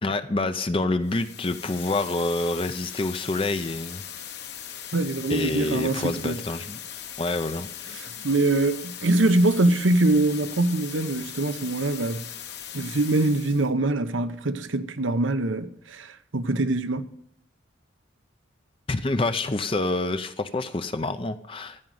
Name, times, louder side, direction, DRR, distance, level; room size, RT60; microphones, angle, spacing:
voice 1, 0.0-4.0 5.3-6.8 7.2-7.7 18.9-21.9, left 2 dB, 25° left, 0.5 m, -27 dB
sound 1, 1.0-13.7, left 9 dB, 60° left, 1.1 m, -39 dB
voice 2, 4.9-6.3 7.9-12.3 12.7-17.1, right 2 dB, 80° right, 0.9 m, -24 dB
15.0 x 5.2 x 9.3 m
head